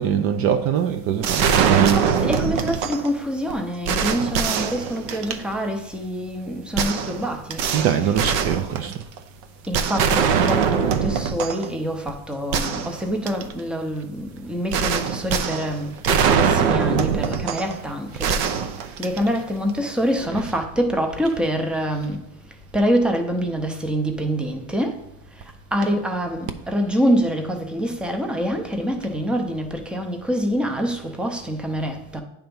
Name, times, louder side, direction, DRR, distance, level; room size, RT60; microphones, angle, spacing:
voice 1, 0.0-2.0 4.6-4.8 5.1-5.4 7.7-8.9 14.8-15.2 18.1-18.2 18.8-19.0 20.3-20.6, right 8 dB, 45° right, 0.5 m, -23 dB
sound 1, 1.2-3.1 3.5-3.6 3.9-5.5 6.8-9.2 9.7-11.7 12.1-12.2 12.5-13.5 14.7-17.8 18.2-19.5, right 7 dB, 65° right, 0.8 m, -22 dB
voice 2, 1.7-7.7 7.9-8.2 9.7-18.3 19.0-22.2 22.7-25.0 25.7-32.2, equal, 5° right, 0.6 m, -25 dB
9.0 x 3.5 x 5.4 m
cardioid pair, 150°, 32 cm